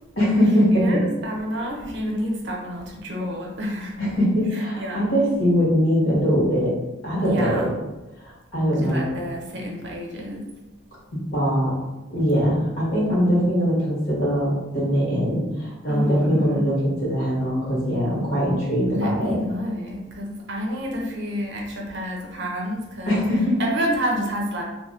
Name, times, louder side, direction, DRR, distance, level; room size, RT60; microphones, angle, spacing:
voice 1, 0.2-1.0 4.0-6.7 7.0-7.7 8.2-9.1 11.1-11.7 12.1-19.3 23.1-23.6, equal, 60° left, -6 dB, 1.3 m, -21 dB
voice 2, 0.7-4.0 4.5-5.1 7.2-7.7 8.8-10.5 15.9-16.7 18.9-23.2 23.6-24.6, equal, 55° right, -1 dB, 0.6 m, -29 dB
2.7 x 2.1 x 3.6 m, 1.0 s
head